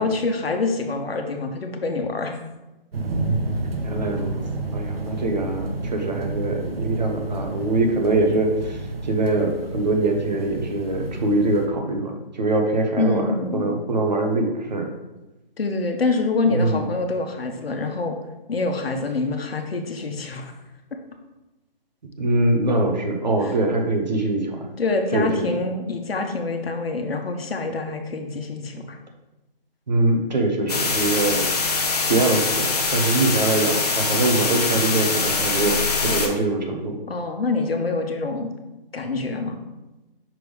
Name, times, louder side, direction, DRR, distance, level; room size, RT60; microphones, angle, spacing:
voice 1, 0.0-2.4 13.0-13.8 15.6-18.1 18.5-20.5 23.4-23.5 24.8-29.0 37.1-38.5 38.9-39.6, left 3 dB, 85° left, 4 dB, 1.1 m, -25 dB
sound 1, 2.9-11.7, right 2 dB, 80° right, 1.0 m, -30 dB
voice 2, 3.8-4.3 4.7-13.2 13.5-14.9 16.4-16.8 22.2-24.7 25.1-25.5 29.9-31.5 32.1-37.0, right 2 dB, 45° right, 3 dB, 1.0 m, -23 dB
sound 2, 30.7-36.3, left 4 dB, 40° left, 0.8 m, -23 dB
6.0 x 3.3 x 5.1 m, 1.0 s
hypercardioid pair, 175°, 29 cm